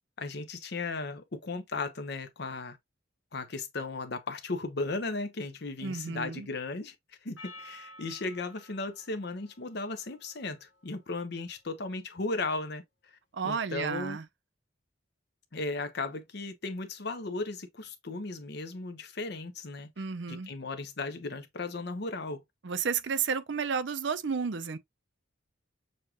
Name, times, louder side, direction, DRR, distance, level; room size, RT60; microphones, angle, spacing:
voice 1, 0.2-2.8 3.3-6.9 7.2-12.8 13.1-13.2 13.4-14.2 15.5-19.9 20.3-22.4, left 3 dB, 55° left, 0.8 m, -36 dB
voice 2, 5.8-6.5 13.3-14.2 20.0-20.5 22.6-24.8, right 6 dB, 60° right, 0.5 m, -32 dB
Percussion, 7.4-11.9, left 1 dB, 80° left, 1.2 m, -53 dB
6.5 x 2.4 x 2.9 m
head